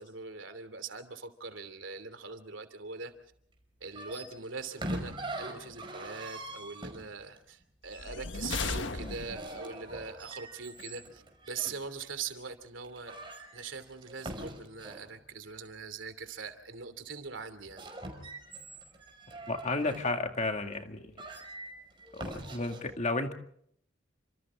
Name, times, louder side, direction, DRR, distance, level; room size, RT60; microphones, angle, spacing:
voice 1, 0.0-3.1 3.8-13.2 13.5-17.8, right 5 dB, 85° right, 9 dB, 2.9 m, -42 dB
sound 1, 3.9-7.4 8.9-11.8 12.4-12.5 12.8-15.1 17.6-20.1 20.7-20.8 21.2-22.8, right 1 dB, 25° right, 5.5 m, -43 dB
sound 2, 7.9-9.7, left 3 dB, 70° left, 1.5 m, -36 dB
voice 2, 19.5-21.1 22.1-23.3, left 2 dB, 40° left, 5 dB, 2.2 m, -32 dB
30.0 x 26.5 x 3.7 m, 0.66 s
head